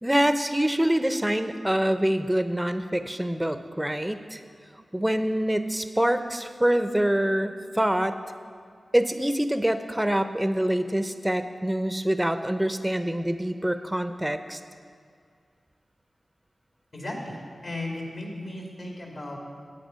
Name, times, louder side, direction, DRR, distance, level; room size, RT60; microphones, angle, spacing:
voice 1, 0.0-4.4 4.9-8.2 8.9-14.6, right 1 dB, 10° right, 10 dB, 0.7 m, -25 dB
voice 2, 16.9-17.4 17.6-19.4, left 1 dB, 60° left, 0 dB, 2.4 m, -35 dB
10.5 x 8.6 x 5.6 m, 2.1 s
cardioid pair, 40°, 0 cm